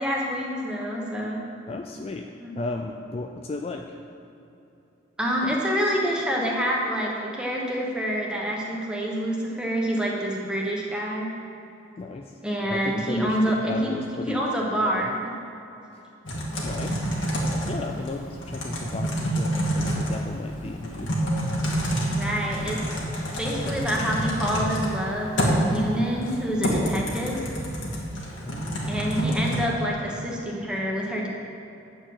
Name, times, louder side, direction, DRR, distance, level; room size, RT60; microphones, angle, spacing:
voice 1, 0.0-1.4 2.4-2.5 5.2-11.3 12.4-15.2 22.1-23.0 23.3-27.5 28.9-31.3, equal, 5° right, -3 dB, 1.1 m, -27 dB
voice 2, 1.7-2.3 2.6-3.9 12.0-12.4 12.7-14.4 14.9-15.1 15.9-16.0 16.6-17.0 17.7-21.2 28.4-29.1, left 3 dB, 30° left, 3 dB, 0.3 m, -35 dB
Typing, 16.2-29.6, equal, 70° left, 1.8 m, -28 dB
8.8 x 4.6 x 7.5 m, 2.9 s
head